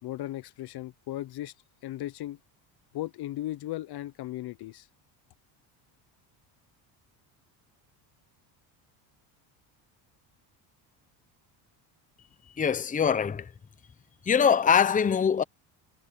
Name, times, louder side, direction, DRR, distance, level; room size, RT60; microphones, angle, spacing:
voice 1, 0.0-1.5 1.8-2.4 2.9-4.9, left 14 dB, 55° left, 0.8 m, -36 dB
voice 2, 12.6-13.5 14.2-15.4, left 7 dB, 15° left, 0.7 m, -23 dB
cardioid pair, 115°, 48 cm